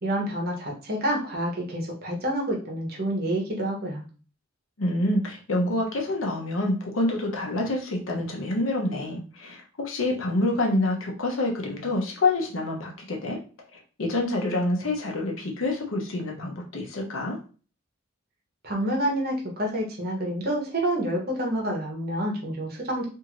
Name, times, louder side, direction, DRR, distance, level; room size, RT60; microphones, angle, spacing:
voice 1, 0.0-4.0 18.6-23.1, right 1 dB, 50° right, -1 dB, 1.0 m, -28 dB
voice 2, 4.8-13.4 14.0-17.4, left 2 dB, 75° left, 0 dB, 0.8 m, -27 dB
2.7 x 2.5 x 3.0 m, 0.38 s
head